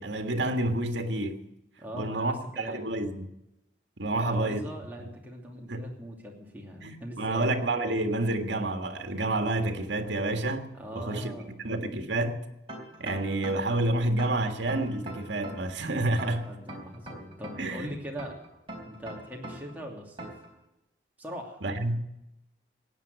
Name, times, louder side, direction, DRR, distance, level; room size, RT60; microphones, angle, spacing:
voice 1, 0.0-1.5 1.9-3.3 4.0-4.6 5.0-5.1 5.7-5.8 6.8-10.7 10.9-12.4 13.0-16.5 17.6-17.9 21.6-22.0, right 2 dB, 80° right, 1.7 m, -29 dB
voice 2, 1.8-2.9 4.1-7.5 10.7-11.6 16.5-18.3 18.8-20.3 21.2-21.6, equal, 10° right, 2.7 m, -41 dB
sound 1, 12.7-13.8 14.2-15.8 16.2-17.8 18.2-19.8 20.2-20.5, right 1 dB, 30° right, 3.9 m, -41 dB
16.5 x 9.3 x 8.1 m
head